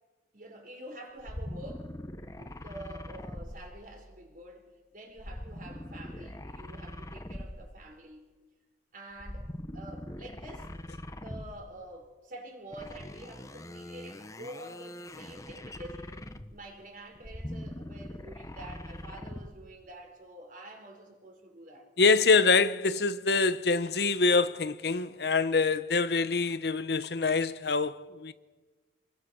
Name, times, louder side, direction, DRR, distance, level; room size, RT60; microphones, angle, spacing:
voice 1, 0.3-1.9 2.3-4.7 4.9-8.2 8.9-10.7 11.1-16.1 16.5-21.9, right 1 dB, 45° right, 4.5 m, -47 dB
sound 1, 1.2-4.3 5.2-7.9 9.2-11.8 12.7-16.7 17.1-19.6, left 1 dB, 20° left, 0.9 m, -42 dB
voice 2, 22.0-28.3, left 4 dB, 60° left, 0.8 m, -25 dB
28.0 x 21.5 x 6.2 m
head